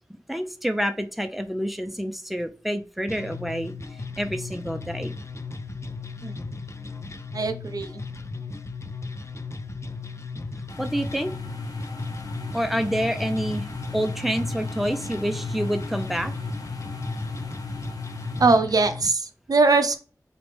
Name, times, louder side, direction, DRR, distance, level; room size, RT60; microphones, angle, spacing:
voice 1, 0.1-5.1 10.8-11.3 12.5-13.7 13.9-16.3, equal, ahead, 6 dB, 0.6 m, -28 dB
sound 1, 3.1-19.1, left 4 dB, 45° left, 0.4 m, -36 dB
voice 2, 7.3-8.0 18.4-20.0, right 3 dB, 70° right, 8 dB, 0.5 m, -21 dB
sound 2, 10.7-18.6, left 2 dB, 65° left, 0.9 m, -35 dB
4.0 x 3.3 x 3.2 m, 0.36 s
wide cardioid pair, 75°, 7 cm